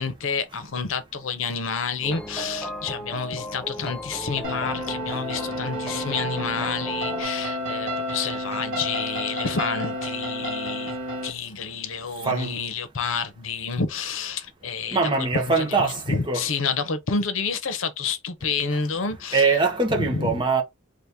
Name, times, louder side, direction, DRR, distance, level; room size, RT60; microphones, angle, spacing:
voice 1, 0.0-11.0 11.2-15.3 15.6-19.5 19.9-20.4, left 5 dB, 85° left, 0.7 m, -29 dB
sound 1, 2.0-7.2, equal, 5° left, 0.5 m, -35 dB
sound 2, 4.4-11.3, equal, 85° right, 1.4 m, -31 dB
voice 2, 14.9-16.4 19.3-20.6, right 4 dB, 25° right, 0.8 m, -22 dB
2.8 x 2.5 x 3.5 m
head